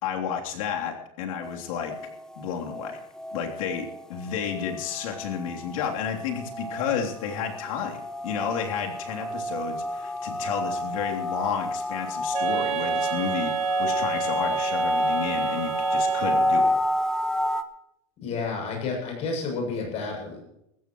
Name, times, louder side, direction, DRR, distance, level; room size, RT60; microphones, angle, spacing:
voice 1, 0.0-1.9 2.3-3.0 3.3-8.0 8.2-16.7, left 7 dB, 90° left, 1 dB, 3.4 m, -31 dB
sound 1, 1.4-17.6, left 1 dB, 5° left, 0.7 m, -29 dB
Wind instrument woodwind instrument, 12.3-16.8, right 16 dB, 40° right, 1.6 m, -31 dB
voice 2, 18.2-20.4, left 4 dB, 40° left, 1 dB, 7.5 m, -30 dB
20.0 x 15.5 x 3.1 m, 0.79 s
supercardioid pair, 160°, 17 cm